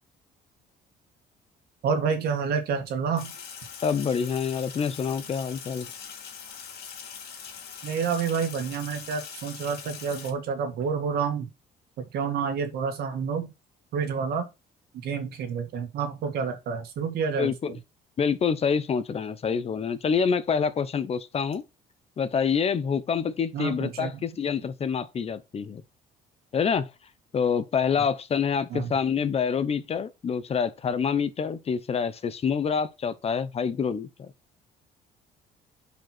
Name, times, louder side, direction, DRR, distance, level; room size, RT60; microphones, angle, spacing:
voice 1, 1.8-3.3 7.8-11.5 12.0-13.5 13.9-14.5 15.0-17.8 23.5-24.1 28.0-28.1 28.7-28.9, right 6 dB, 70° right, 1.9 m, -29 dB
Sink (filling or washing), 3.2-10.3, left 7 dB, 70° left, 2.2 m, -42 dB
voice 2, 3.8-5.9 17.4-17.8 18.2-21.6 22.2-25.8 26.5-26.9 27.3-34.3, left 6 dB, 35° left, 0.8 m, -27 dB
5.2 x 4.6 x 5.9 m
cardioid pair, 110°, 17 cm